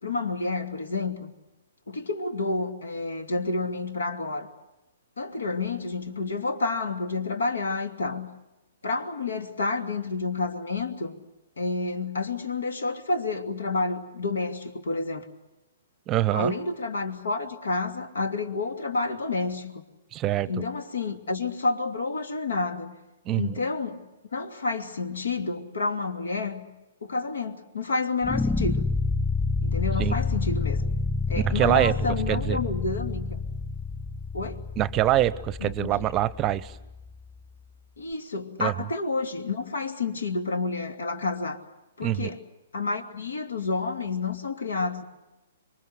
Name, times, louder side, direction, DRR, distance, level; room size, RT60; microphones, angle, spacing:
voice 1, 0.0-1.3 1.9-4.5 5.2-8.3 8.8-11.2 11.6-15.3 16.3-19.8 20.5-23.0 23.4-26.7 27.0-28.8 29.6-30.8 31.3-33.4 34.3-34.6 35.6-36.1 38.0-41.6 42.0-42.4 42.7-45.0, left 3 dB, 70° left, 8 dB, 2.7 m, -29 dB
voice 2, 16.1-16.5 20.1-20.5 23.3-23.5 30.0-30.2 31.4-31.9 32.3-32.6 34.8-36.7 38.6-38.7 42.0-42.3, right 13 dB, 25° right, 20 dB, 0.8 m, -24 dB
sound 1, 28.2-37.3, left 3 dB, 10° left, 2.5 m, -29 dB
26.5 x 23.0 x 8.0 m, 0.98 s
figure-of-eight pair, 120°, 0 cm